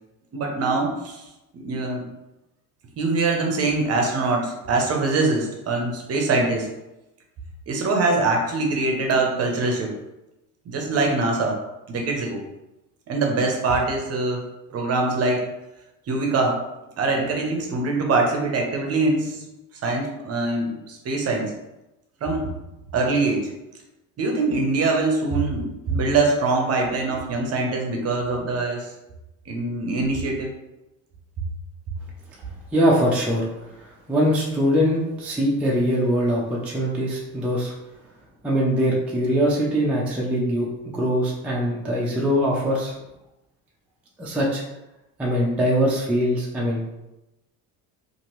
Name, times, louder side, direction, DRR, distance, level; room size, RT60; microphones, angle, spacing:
voice 1, 0.3-1.2 1.5-2.0 3.0-6.7 7.7-9.9 10.7-11.6 11.9-12.4 13.1-14.4 14.7-15.4 16.1-16.6 17.0-19.4 19.8-21.5 22.2-22.5 22.9-23.5 24.2-28.9 29.5-30.5, right 3 dB, 40° right, 1 dB, 0.6 m, -23 dB
voice 2, 32.7-33.5 33.8-37.7 38.4-40.7 40.9-43.0 44.2-44.6 45.2-46.8, equal, 5° right, -4 dB, 0.3 m, -22 dB
2.9 x 2.5 x 2.9 m, 0.96 s
cardioid pair, 130°, 39 cm